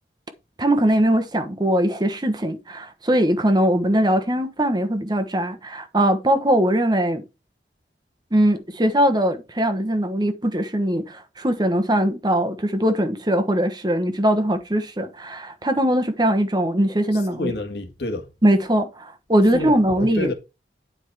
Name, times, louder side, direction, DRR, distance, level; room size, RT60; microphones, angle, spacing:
voice 1, 0.6-7.2 8.3-17.5 18.4-20.3, right 1 dB, 25° right, 1.1 m, -21 dB
voice 2, 17.1-18.3 19.5-20.3, left 2 dB, 65° left, 1.9 m, -29 dB
9.9 x 5.0 x 4.8 m
head